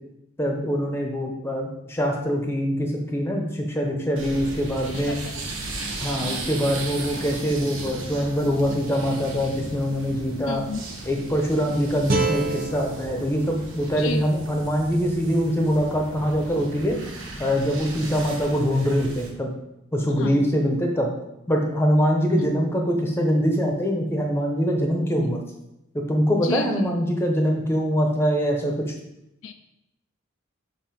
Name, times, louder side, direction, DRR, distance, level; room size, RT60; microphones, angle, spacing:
voice 1, 0.4-5.2 6.0-10.6 11.1-17.0 17.4-19.5 19.9-21.1 21.5-25.4 26.1-28.7, equal, 10° left, 1 dB, 0.8 m, -23 dB
sound 1, 4.2-19.3, right 2 dB, 70° right, 1.1 m, -36 dB
voice 2, 4.9-5.3 5.6-5.7 10.5-10.8 14.0-14.3 20.2-20.5 22.4-22.5 25.2-25.3 26.3-26.8 29.4-29.5, left 4 dB, 70° left, 7 dB, 0.4 m, -32 dB
sound 2, 12.1-15.2, right 3 dB, 45° right, 0.7 m, -30 dB
7.4 x 2.7 x 5.2 m, 0.86 s
head